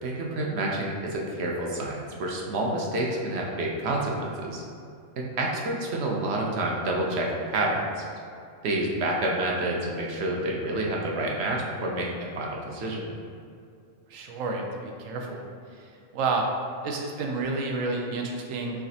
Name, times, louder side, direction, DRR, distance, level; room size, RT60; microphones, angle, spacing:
voice 1, 0.0-4.6 5.2-8.0 8.6-13.2, right 1 dB, 65° right, -2 dB, 0.8 m, -28 dB
voice 2, 14.1-15.4 16.1-16.5 16.8-18.8, right 3 dB, 85° right, 1 dB, 1.0 m, -30 dB
4.7 x 3.2 x 2.7 m, 2.4 s
omnidirectional pair, 1.3 m